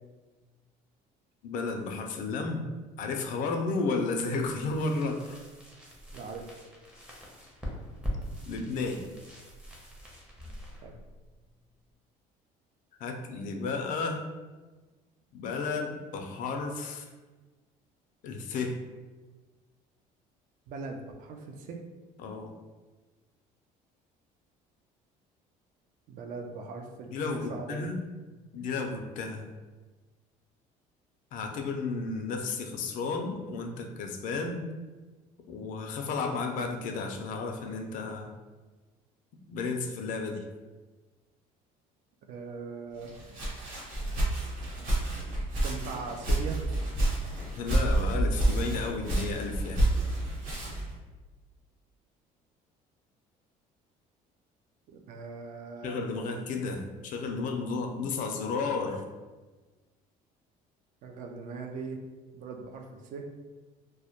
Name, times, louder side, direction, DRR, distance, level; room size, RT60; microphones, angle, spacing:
voice 1, 1.4-2.7 3.0-5.4 8.5-9.0 13.0-14.2 15.3-17.1 18.2-18.8 22.2-22.5 27.1-28.1 28.5-29.5 31.3-34.6 35.5-38.3 39.5-40.5 47.6-49.8 55.8-59.0, left 4 dB, 60° left, 4 dB, 0.4 m, -33 dB
sound 1, 4.2-11.9, equal, 5° right, 0.5 m, -42 dB
voice 2, 6.1-6.5 10.8-10.9 20.7-21.8 26.1-27.9 42.3-43.2 45.6-46.6 54.9-56.0 61.0-62.0 62.3-63.3, right 4 dB, 60° right, 3 dB, 0.4 m, -40 dB
Walk footsteps, 43.0-50.9, right 1 dB, 90° right, 1.0 m, -29 dB
2.1 x 2.1 x 2.8 m, 1.3 s
cardioid pair, 130°, 15 cm